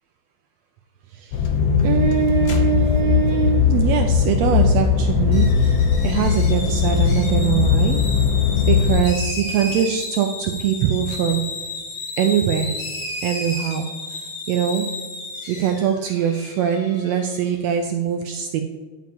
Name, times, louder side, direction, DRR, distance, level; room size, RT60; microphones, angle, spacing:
voice 1, 1.1-1.5 1.8-5.7 6.0-8.0 8.7-11.4 12.2-12.8 13.2-14.9 15.5-18.6, right 8 dB, 80° right, 4 dB, 1.6 m, -22 dB
sound 1, 1.3-9.0, left 6 dB, 90° left, 1.0 m, -19 dB
sound 2, 5.3-17.6, left 2 dB, 65° left, 3.2 m, -33 dB
10.0 x 7.2 x 2.9 m, 1.4 s
omnidirectional pair, 3.4 m